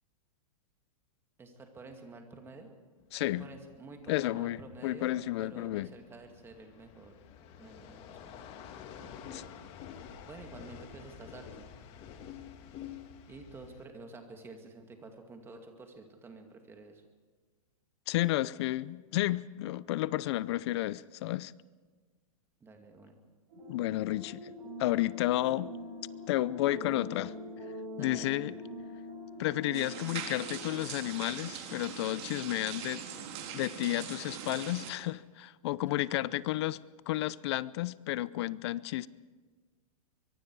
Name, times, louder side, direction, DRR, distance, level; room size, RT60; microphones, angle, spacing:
voice 1, 1.4-2.7 3.2-7.2 7.6-8.5 9.0-9.5 10.3-11.7 13.3-17.0 22.6-23.1 27.9-28.6 36.0-36.4, right 3 dB, 10° right, 2.3 m, -50 dB
sound 1, 3.0-13.9, left 8 dB, 30° left, 1.8 m, -49 dB
voice 2, 3.1-3.5 4.1-5.9 9.3-9.4 18.1-21.5 23.7-24.5 24.8-25.7 26.3-27.3 28.0-28.5 29.4-33.0 33.5-36.8 37.1-39.1, left 16 dB, 45° left, 0.6 m, -32 dB
sound 2, 23.5-30.7, left 1 dB, 75° right, 7.7 m, -44 dB
sound 3, 29.7-34.9, right 8 dB, 45° right, 3.7 m, -42 dB
24.0 x 22.5 x 4.8 m
hypercardioid pair, 155°, 19 cm